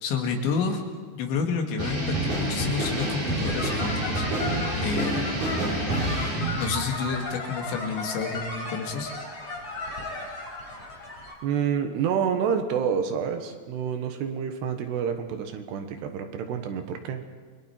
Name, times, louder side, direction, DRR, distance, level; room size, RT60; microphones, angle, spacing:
voice 1, 0.0-0.8 1.1-4.3 4.7-5.4 6.5-9.1, left 5 dB, 85° left, 3 dB, 4.2 m, -29 dB
sound 1, 1.8-6.8, right 1 dB, 50° right, 8.4 m, -28 dB
sound 2, 3.4-11.3, left 2 dB, 40° left, 5.2 m, -35 dB
voice 2, 11.4-17.2, right 7 dB, 75° right, 6 dB, 3.3 m, -28 dB
29.5 x 22.5 x 4.5 m, 1.6 s
omnidirectional pair, 5.1 m